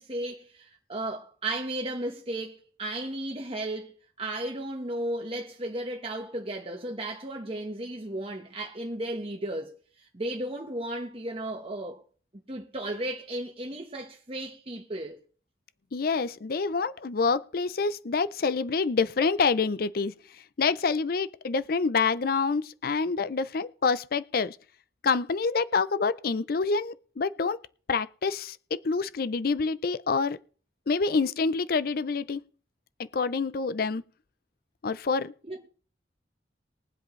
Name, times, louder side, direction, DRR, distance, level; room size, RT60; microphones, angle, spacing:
voice 1, 0.0-12.0 12.5-15.2 35.5-35.6, right 1 dB, 30° right, 1.2 m, -34 dB
voice 2, 15.9-20.1 20.6-24.6 25.0-27.6 27.9-30.4 30.9-32.4 33.0-34.0 34.8-35.3, left 4 dB, 55° left, 0.5 m, -27 dB
22.0 x 7.8 x 3.2 m
head